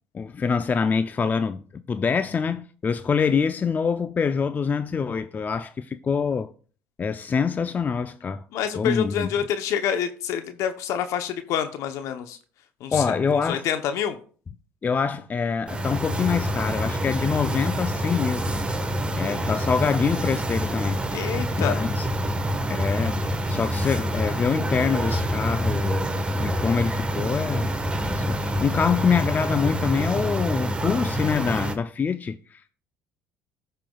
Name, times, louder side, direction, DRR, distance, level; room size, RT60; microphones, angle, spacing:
voice 1, 0.1-6.5 7.0-8.4 8.8-9.3 12.9-13.6 14.8-18.6 19.1-21.0 21.6-22.3 22.7-27.7 28.1-32.7, left 5 dB, 30° left, 0.5 m, -25 dB
voice 2, 8.5-12.4 12.8-13.0 13.3-14.2 21.1-21.8, left 8 dB, 70° left, 0.8 m, -27 dB
sound 1, 15.7-31.7, equal, 20° right, 1.3 m, -27 dB
14.5 x 5.7 x 2.3 m
supercardioid pair, 75°, 6 cm